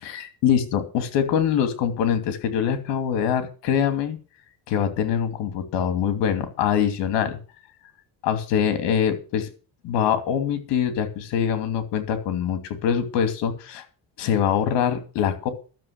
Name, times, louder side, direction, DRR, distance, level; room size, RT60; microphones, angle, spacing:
voice 1, 0.0-4.2 4.7-7.4 8.2-9.5 9.8-13.8 14.2-15.5, left 8 dB, 80° left, 8 dB, 2.7 m, -24 dB
12.0 x 6.8 x 8.1 m, 0.36 s
supercardioid pair, 90°, 42 cm